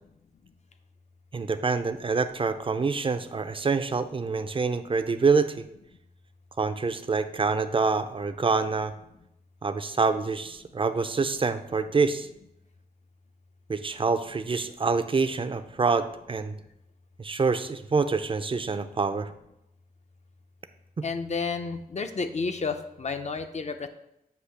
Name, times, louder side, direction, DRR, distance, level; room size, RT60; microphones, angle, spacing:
voice 1, 1.3-5.7 6.6-8.9 9.6-12.3 13.7-16.5 17.2-19.3 21.0-21.1, right 4 dB, 35° right, 9 dB, 0.5 m, -26 dB
voice 2, 21.0-23.9, left 4 dB, 45° left, 8 dB, 0.6 m, -31 dB
8.1 x 2.7 x 5.7 m, 0.82 s
wide cardioid pair, 95°, 16 cm